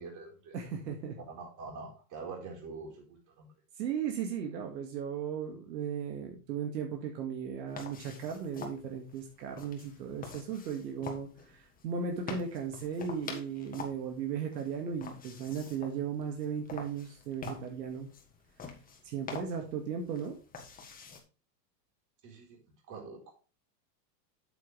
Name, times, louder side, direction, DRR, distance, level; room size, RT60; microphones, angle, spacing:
voice 1, 0.0-0.6 1.2-3.5 22.2-22.6 22.9-23.2, right 4 dB, 35° right, 1 dB, 4.2 m, -45 dB
voice 2, 0.5-1.2 3.8-18.1 19.0-20.4, right 7 dB, 75° right, 3 dB, 2.1 m, -36 dB
sound 1, 7.7-21.2, left 4 dB, 15° left, 1.6 m, -47 dB
8.4 x 7.9 x 3.3 m, 0.35 s
supercardioid pair, 135°, 50 cm